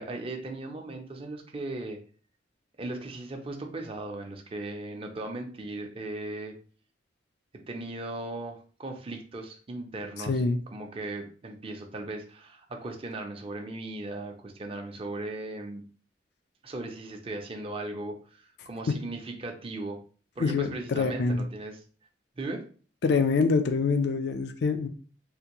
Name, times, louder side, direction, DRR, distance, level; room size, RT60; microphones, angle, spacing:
voice 1, 0.0-2.0 2.8-6.6 7.7-10.4 10.7-15.8 16.6-20.0 20.4-21.8 22.4-22.6, right 2 dB, 30° right, 3 dB, 0.5 m, -37 dB
voice 2, 10.3-10.6 20.4-21.5 23.0-24.9, left 4 dB, 65° left, 8 dB, 0.4 m, -25 dB
3.5 x 2.5 x 2.9 m, 0.41 s
head